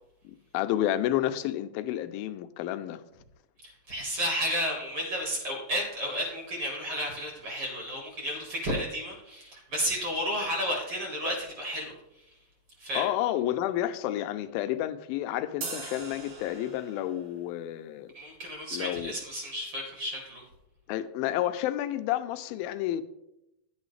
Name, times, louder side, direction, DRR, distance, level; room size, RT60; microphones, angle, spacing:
voice 1, 0.2-3.0 12.9-18.1 18.7-19.2 20.9-23.0, left 13 dB, 85° left, 9 dB, 2.4 m, -30 dB
voice 2, 3.6-11.9 12.8-13.1 18.1-20.4, equal, 45° right, 0 dB, 2.2 m, -32 dB
sound 1, 15.6-17.2, right 4 dB, 85° right, 3.4 m, -40 dB
10.5 x 8.9 x 3.2 m, 0.87 s
omnidirectional pair, 4.2 m